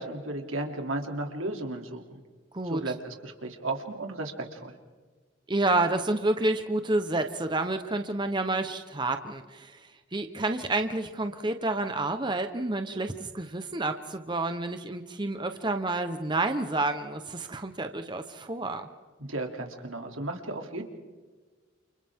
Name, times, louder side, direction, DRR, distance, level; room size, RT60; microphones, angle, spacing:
voice 1, 0.0-2.2 2.7-4.7 19.2-20.8, right 2 dB, 90° right, 3 dB, 2.9 m, -34 dB
voice 2, 2.5-2.9 5.5-18.9, right 2 dB, 25° right, 7 dB, 1.0 m, -29 dB
30.0 x 29.0 x 3.7 m, 1.4 s
head